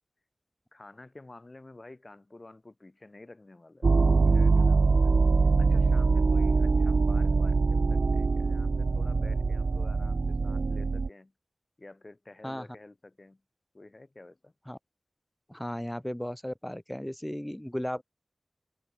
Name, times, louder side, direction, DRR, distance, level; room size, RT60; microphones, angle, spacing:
voice 1, 0.7-3.9 4.2-5.2 5.6-11.3 11.8-13.4 13.7-14.5, left 2 dB, 40° left, 5.3 m, -50 dB
sound 1, 3.8-11.1, right 4 dB, 80° right, 0.4 m, -23 dB
voice 2, 15.5-18.0, equal, 10° left, 1.5 m, -35 dB
wide cardioid pair, 70°, 0 cm